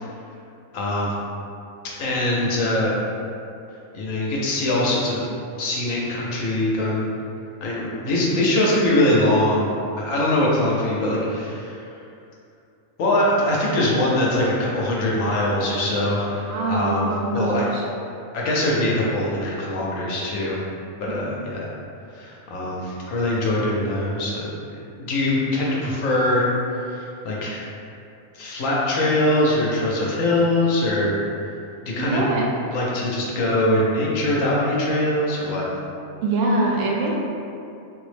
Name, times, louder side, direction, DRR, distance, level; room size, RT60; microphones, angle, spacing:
voice 1, 0.7-1.1 2.0-3.0 3.9-5.2 5.6-7.0 7.6-9.7 10.0-11.8 13.0-17.7 18.3-20.6 21.0-21.7 22.1-26.5 26.8-27.7 28.3-31.1 31.8-32.2 32.7-35.6, left 1 dB, 75° left, -4 dB, 1.0 m, -22 dB
voice 2, 16.4-17.8 21.1-21.4 32.0-32.4 36.2-37.2, right 2 dB, 70° right, -2 dB, 0.8 m, -24 dB
3.7 x 2.0 x 3.2 m, 2.6 s
omnidirectional pair, 1.4 m